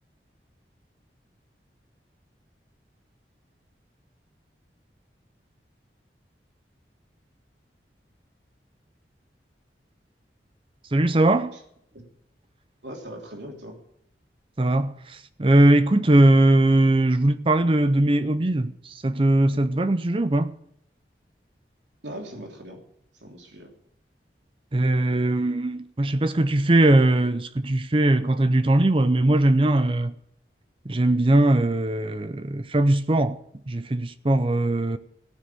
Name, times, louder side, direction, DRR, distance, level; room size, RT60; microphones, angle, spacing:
voice 1, 10.9-11.6 14.6-20.5 24.7-30.1 30.9-33.4 33.7-35.0, right 1 dB, 30° right, 0.6 m, -20 dB
voice 2, 12.8-13.8 22.0-22.8 23.2-23.8, equal, 90° right, 3.2 m, -39 dB
16.5 x 6.5 x 9.1 m
head